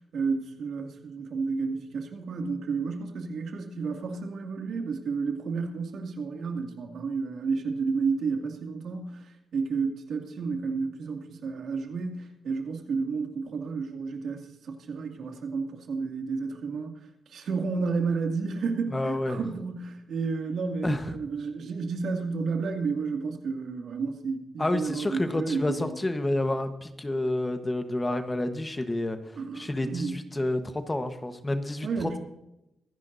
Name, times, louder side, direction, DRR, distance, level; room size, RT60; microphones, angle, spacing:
voice 1, 0.1-17.0 17.3-25.9 29.4-30.2 31.8-32.2, right 4 dB, 70° right, 3 dB, 2.4 m, -31 dB
voice 2, 18.9-19.4 20.8-21.0 24.6-32.2, left 1 dB, 20° left, 8 dB, 1.2 m, -29 dB
24.0 x 10.5 x 2.7 m, 0.89 s
cardioid pair, 100°, 0 cm